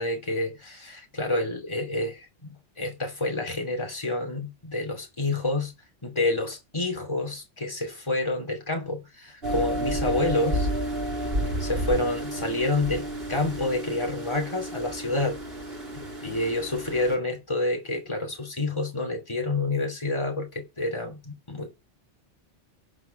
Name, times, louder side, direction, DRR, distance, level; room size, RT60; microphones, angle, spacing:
voice 1, 0.0-5.7 6.0-10.7 11.6-15.4 16.2-21.7, left 2 dB, 25° left, 3.0 m, -28 dB
sound 1, 9.4-17.2, right 1 dB, 55° right, 5.6 m, -31 dB
11.5 x 5.9 x 5.9 m
omnidirectional pair, 1.2 m